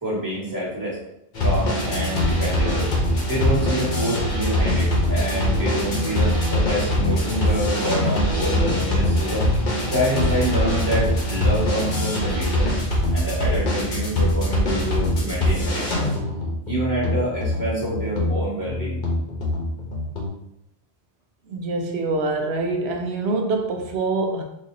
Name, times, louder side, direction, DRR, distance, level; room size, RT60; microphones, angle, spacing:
voice 1, 0.0-1.0 1.4-2.9 3.3-9.5 9.9-12.7 13.1-16.1 16.7-19.0, right 1 dB, 20° right, -6 dB, 1.3 m, -27 dB
sound 1, 1.3-20.3, left 1 dB, 55° left, 0.9 m, -23 dB
voice 2, 21.5-24.4, right 3 dB, 85° right, 3 dB, 0.9 m, -25 dB
4.2 x 2.6 x 2.6 m, 0.80 s
omnidirectional pair, 1.1 m